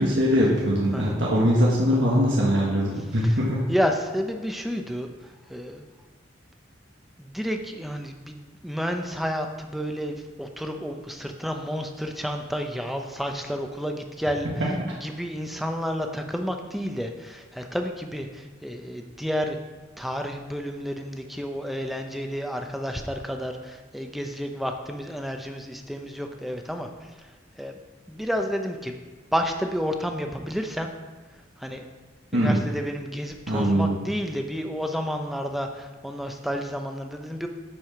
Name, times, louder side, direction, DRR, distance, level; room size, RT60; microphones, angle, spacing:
voice 1, 0.0-3.6 14.6-14.7 32.3-32.6 33.5-34.0, equal, 80° right, -4 dB, 1.5 m, -22 dB
voice 2, 3.7-5.1 5.5-5.9 7.2-14.5 15.0-19.6 20.0-27.3 27.6-27.8 28.1-29.0 29.3-30.9 31.6-31.8 32.3-37.5, equal, ahead, 4 dB, 0.7 m, -30 dB
10.5 x 4.9 x 5.9 m, 1.3 s
head